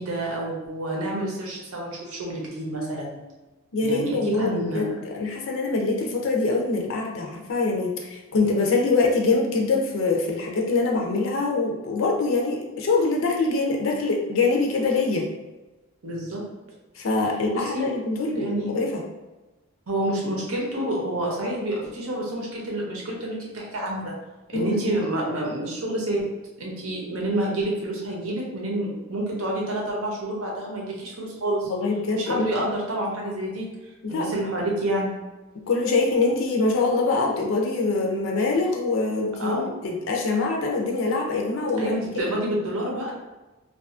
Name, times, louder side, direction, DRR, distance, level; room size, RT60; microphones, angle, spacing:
voice 1, 0.0-3.2 3.8-4.8 16.0-16.4 17.5-17.9 18.3-18.7 19.9-24.1 24.5-26.3 26.6-31.7 32.1-33.7 34.1-35.1 39.4-39.7 41.8-43.1, right 1 dB, 85° right, -2 dB, 0.7 m, -28 dB
voice 2, 3.7-15.2 16.9-19.0 24.5-24.8 31.7-32.5 34.0-34.3 35.7-39.6 39.8-42.1, left 3 dB, 65° left, 0 dB, 0.4 m, -24 dB
2.5 x 2.3 x 2.4 m, 1.1 s
head